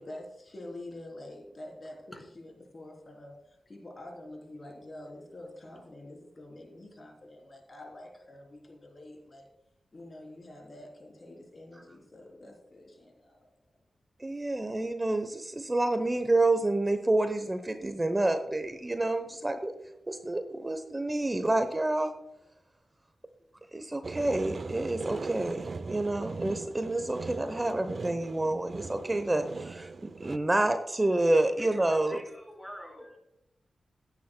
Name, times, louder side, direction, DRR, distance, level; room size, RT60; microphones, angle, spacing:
voice 1, 0.0-9.5 9.9-13.5, left 1 dB, 45° left, 1 dB, 3.4 m, -47 dB
voice 2, 14.2-19.7 20.1-22.1 23.7-29.9 30.2-32.2, right 2 dB, 25° right, 9 dB, 0.8 m, -28 dB
sound 1, 24.0-30.4, right 4 dB, 60° right, 0.4 m, -39 dB
voice 3, 31.5-33.2, equal, 10° left, 0 dB, 4.0 m, -46 dB
14.0 x 9.5 x 2.2 m, 0.89 s
cardioid pair, 50°, 0 cm